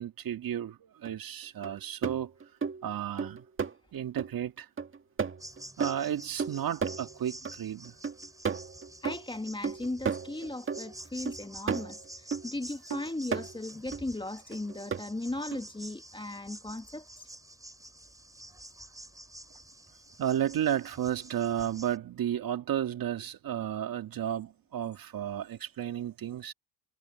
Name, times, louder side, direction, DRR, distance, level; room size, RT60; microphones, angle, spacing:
voice 1, 0.0-2.3 2.8-3.4 3.9-4.7 5.8-7.9 20.2-26.5, right 10 dB, 50° right, 2.0 m, -33 dB
sound 1, 1.0-1.1 1.6-4.3 4.8-7.6 7.8-12.5 12.9-14.0 14.5-15.0 15.5-15.6, right 5 dB, 25° right, 1.8 m, -34 dB
sound 2, 5.4-22.0, right 1 dB, 5° right, 7.4 m, -49 dB
voice 2, 9.0-17.3, left 2 dB, 10° left, 2.4 m, -37 dB
supercardioid pair, 90°, 45 cm